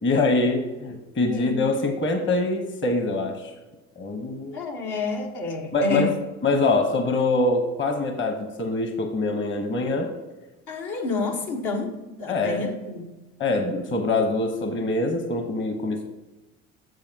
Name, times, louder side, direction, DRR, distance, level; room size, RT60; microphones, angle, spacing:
voice 1, 0.0-3.5 4.0-4.6 5.7-6.1 6.4-10.1 12.3-12.6 13.4-16.0, left 2 dB, 35° left, 5 dB, 1.2 m, -24 dB
voice 2, 1.3-1.6 4.5-6.1 10.7-13.1, left 3 dB, 70° left, 1 dB, 1.4 m, -29 dB
7.7 x 7.0 x 2.9 m, 1.1 s
supercardioid pair, 80°, 32 cm